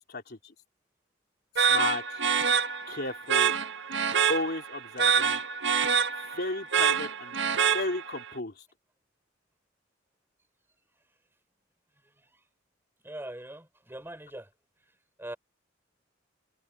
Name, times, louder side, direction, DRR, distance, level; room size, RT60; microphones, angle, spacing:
voice 1, 0.1-0.5 1.6-2.2 2.9-3.5 4.3-5.4 6.2-7.4 7.7-8.6, left 2 dB, 55° left, 3.5 m, -34 dB
sound 1, 1.6-8.3, right 7 dB, 65° right, 1.8 m, -26 dB
voice 2, 12.0-12.4 13.0-14.5 15.2-15.4, right 1 dB, 10° right, 4.9 m, -42 dB
head